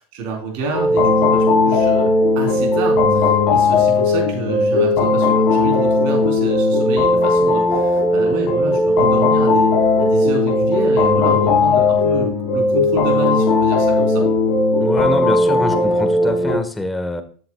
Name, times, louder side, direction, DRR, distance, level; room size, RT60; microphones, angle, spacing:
voice 1, 0.0-9.7 10.0-14.2, right 4 dB, 60° right, 1 dB, 4.3 m, -28 dB
sound 1, 0.7-16.6, left 2 dB, 55° left, 4.5 m, -16 dB
voice 2, 14.8-17.2, left 2 dB, 10° left, 9 dB, 1.8 m, -24 dB
13.5 x 7.7 x 2.5 m, 0.44 s
hypercardioid pair, 95°, 0 cm